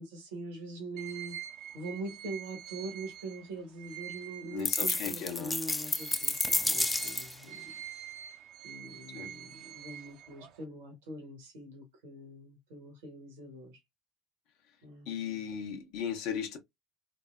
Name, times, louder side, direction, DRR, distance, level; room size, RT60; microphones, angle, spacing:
voice 1, 0.0-1.4 1.7-7.7 8.6-13.8 14.8-15.5, right 2 dB, 80° right, 1.2 m, -43 dB
sound 1, 1.0-5.3 5.8-10.6, right 11 dB, 65° right, 0.6 m, -46 dB
voice 2, 4.5-5.6 9.1-9.3 15.1-16.6, left 8 dB, 70° left, 0.9 m, -37 dB
sound 2, 4.6-7.4, left 2 dB, 15° left, 0.4 m, -30 dB
3.9 x 2.0 x 2.4 m
hypercardioid pair, 65°, 0 cm